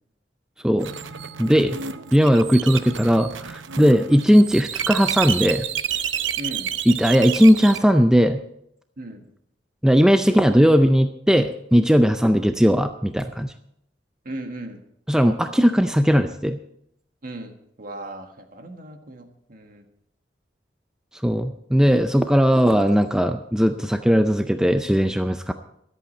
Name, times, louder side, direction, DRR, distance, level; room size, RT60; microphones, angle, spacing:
sound 1, 0.8-7.8, right 9 dB, 90° right, 0.7 m, -30 dB
voice 1, 1.4-1.8 2.1-5.7 6.9-8.4 9.8-13.5 15.1-16.6 21.2-25.5, equal, 5° right, 7 dB, 0.4 m, -18 dB
voice 2, 6.4-6.7 9.0-9.2 14.2-14.8 17.2-19.8, right 1 dB, 50° right, 5 dB, 1.6 m, -37 dB
23.0 x 8.4 x 4.3 m, 0.75 s
head